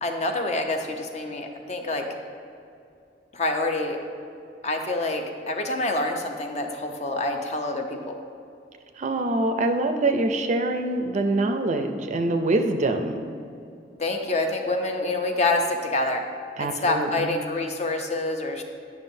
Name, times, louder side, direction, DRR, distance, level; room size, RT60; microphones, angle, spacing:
voice 1, 0.0-2.1 3.3-4.0 4.6-8.2 14.0-16.2 16.6-18.6, left 2 dB, 40° left, 4 dB, 0.6 m, -27 dB
voice 2, 9.0-13.2 16.6-17.4, right 2 dB, 40° right, 6 dB, 0.4 m, -24 dB
9.3 x 5.9 x 2.7 m, 2.5 s
head